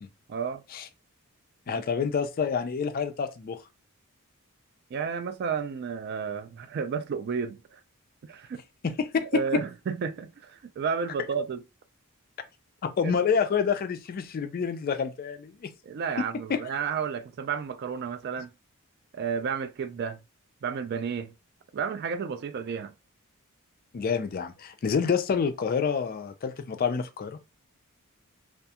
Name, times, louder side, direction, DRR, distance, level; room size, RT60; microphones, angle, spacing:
voice 1, 0.3-0.6 4.9-7.8 8.2-8.6 9.3-11.6 13.0-13.1 15.8-18.5 19.1-20.2 20.6-21.3 21.7-22.9, right 6 dB, 50° right, 0.3 m, -32 dB
voice 2, 1.7-3.6 8.8-9.4 13.0-15.7 16.2-16.6 23.9-27.4, left 6 dB, 40° left, 0.3 m, -28 dB
2.4 x 2.2 x 2.7 m
head